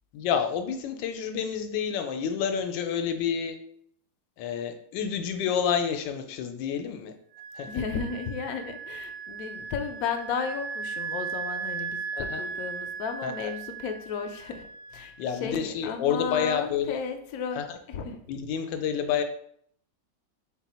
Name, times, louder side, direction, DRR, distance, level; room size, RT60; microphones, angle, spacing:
voice 1, 0.1-3.6 4.4-7.1 7.5-7.8 12.3-12.4 13.2-13.5 15.2-17.0 17.6-17.8 18.3-19.2, left 7 dB, 90° left, 7 dB, 1.3 m, -29 dB
Wind instrument woodwind instrument, 7.3-15.6, right 6 dB, 70° right, 1.0 m, -37 dB
voice 2, 7.7-17.6 17.9-18.2, left 6 dB, 70° left, 5 dB, 0.9 m, -34 dB
4.0 x 2.2 x 4.2 m, 0.65 s
omnidirectional pair, 1.9 m